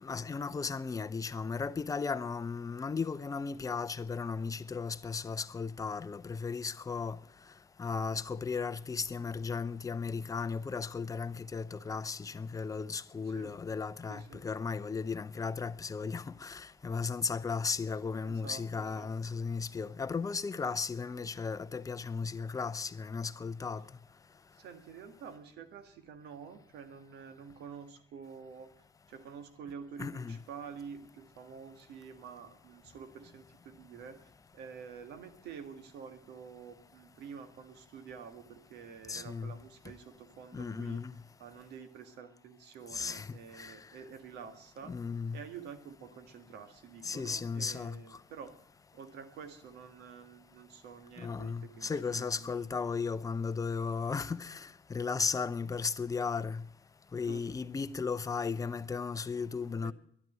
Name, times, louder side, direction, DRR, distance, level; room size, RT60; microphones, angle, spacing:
voice 1, 0.0-7.2 7.8-23.8 30.0-30.4 39.1-39.5 40.5-41.1 42.9-43.7 44.9-45.4 47.0-48.0 51.2-56.6 57.1-59.9, left 5 dB, 20° left, 0.6 m, -35 dB
voice 2, 14.1-14.4 18.2-19.1 24.5-28.7 29.1-41.0 41.4-44.9 45.3-48.5 48.9-52.7 57.3-57.4 59.8-59.9, right 6 dB, 80° right, 1.7 m, -48 dB
11.0 x 11.0 x 8.9 m
cardioid pair, 110°, 17 cm